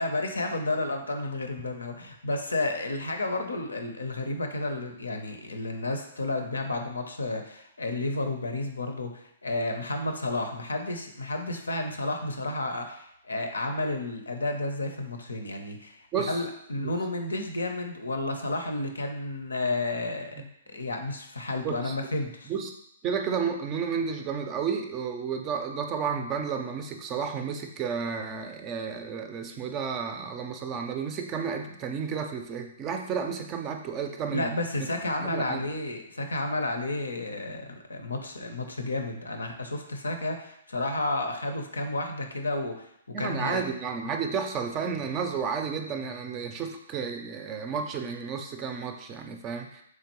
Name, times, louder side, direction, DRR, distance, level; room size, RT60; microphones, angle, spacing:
voice 1, 0.0-20.4 20.7-22.5 34.3-42.9 43.2-43.6, left 2 dB, 80° left, 5 dB, 0.5 m, -31 dB
voice 2, 16.1-16.4 16.8-16.9 20.4-20.5 20.7-20.8 21.6-22.0 22.5-22.7 23.0-34.5 35.2-35.6 43.1-49.8, right 6 dB, 25° right, 5 dB, 0.4 m, -32 dB
3.7 x 3.1 x 3.0 m, 0.74 s
figure-of-eight pair, 125°, 0 cm